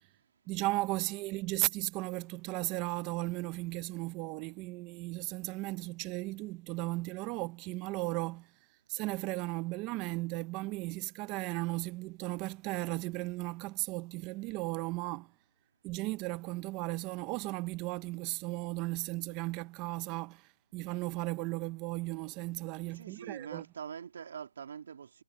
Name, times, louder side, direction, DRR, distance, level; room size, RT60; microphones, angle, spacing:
voice 1, 0.5-8.5 8.9-15.3 15.8-23.6, right 21 dB, 15° right, 0.6 m, -36 dB
voice 2, 22.9-25.2, right 7 dB, 40° right, 2.4 m, -44 dB
hypercardioid pair, 175°, 0 cm